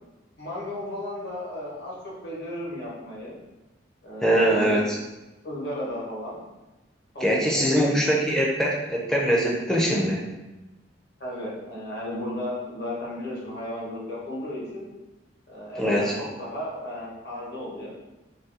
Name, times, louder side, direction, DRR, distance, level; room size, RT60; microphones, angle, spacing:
voice 1, 0.4-3.4 4.0-4.8 5.4-6.5 7.1-8.0 11.2-14.9 15.5-17.9, left 1 dB, 60° left, -5 dB, 1.0 m, -34 dB
voice 2, 4.2-5.0 7.2-10.2 15.8-16.2, equal, 5° left, -3 dB, 0.4 m, -22 dB
2.6 x 2.2 x 3.7 m, 1.1 s
head